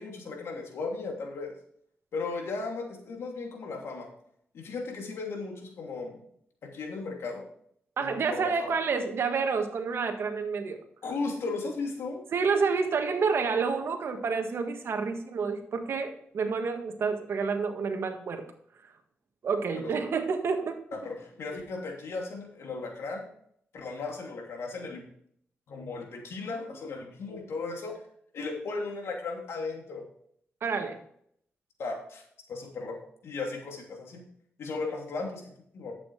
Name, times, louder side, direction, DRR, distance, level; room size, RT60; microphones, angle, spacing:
voice 1, 0.0-1.5 2.1-4.1 4.5-6.2 6.6-7.4 8.0-8.7 11.0-12.2 19.8-19.9 21.0-23.3 23.7-25.0 25.7-28.0 28.3-30.0 31.8-32.2 32.5-33.0 33.2-34.2 34.6-35.4 35.7-35.9, left 3 dB, 80° left, 1 dB, 2.8 m, -36 dB
voice 2, 8.0-10.8 12.3-18.4 19.4-20.8 21.5-21.6 30.6-31.0, right 5 dB, 70° right, 6 dB, 1.6 m, -29 dB
11.0 x 8.6 x 3.3 m, 0.66 s
cardioid pair, 80°, 4 cm